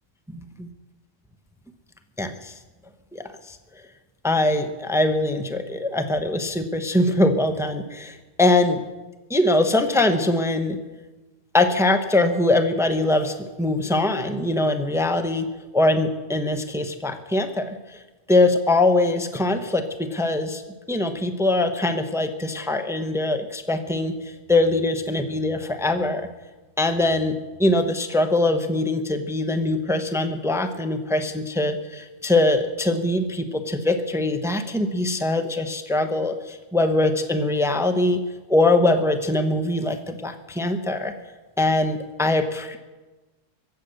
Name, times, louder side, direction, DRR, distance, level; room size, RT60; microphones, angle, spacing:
voice 1, 2.2-2.5 3.1-3.6 4.2-8.8 9.3-10.8 11.5-15.5 15.7-17.8 18.3-20.6 20.9-26.3 26.8-38.2 38.5-41.1 41.6-42.8, left 2 dB, 5° right, 7 dB, 0.8 m, -22 dB
23.0 x 8.1 x 6.7 m, 1.2 s
omnidirectional pair, 1.3 m